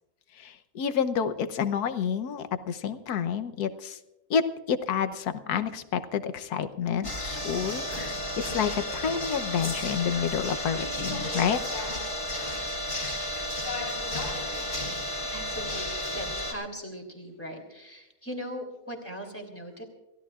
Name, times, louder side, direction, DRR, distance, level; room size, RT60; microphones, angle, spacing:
voice 1, 0.4-4.0 4.3-4.4 4.7-11.6, left 7 dB, 85° left, 10 dB, 1.4 m, -29 dB
sound 1, 7.0-16.5, left 1 dB, 35° left, 3.0 m, -32 dB
voice 2, 15.2-19.8, equal, 10° left, 3 dB, 2.8 m, -39 dB
28.5 x 16.0 x 2.4 m, 1.0 s
omnidirectional pair, 1.6 m